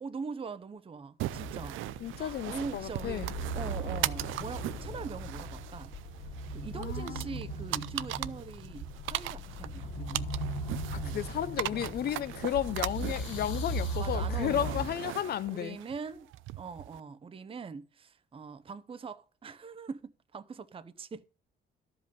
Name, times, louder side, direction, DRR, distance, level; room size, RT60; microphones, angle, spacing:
voice 1, 0.0-1.8 2.2-5.9 6.5-10.3 10.9-11.2 11.7-11.9 14.0-14.8 15.5-16.3 16.6-21.2, right 5 dB, 30° right, 0.6 m, -42 dB
sound 1, 1.2-17.0, right 15 dB, 80° right, 0.4 m, -39 dB
sound 2, 1.3-14.9, right 1 dB, 80° left, 2.1 m, -38 dB
voice 2, 2.0-3.3 6.7-7.3 10.9-15.8, left 10 dB, 50° left, 0.5 m, -33 dB
12.0 x 5.3 x 5.3 m
cardioid pair, 90°, 20 cm